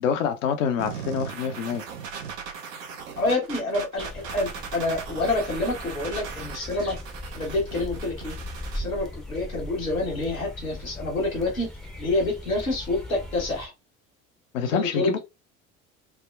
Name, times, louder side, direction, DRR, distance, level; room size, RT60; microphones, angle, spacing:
voice 1, 0.0-1.8 14.5-15.2, left 7 dB, 70° left, 0.6 m, -26 dB
sound 1, 0.8-8.8, right 6 dB, 75° right, 0.7 m, -38 dB
voice 2, 3.2-7.0 7.3-8.4 8.7-11.7 12.0-13.7 14.7-15.2, left 2 dB, 85° left, 1.1 m, -27 dB
sound 2, 4.0-13.7, left 1 dB, ahead, 0.6 m, -39 dB
3.4 x 2.1 x 2.3 m
figure-of-eight pair, 65°, 40 cm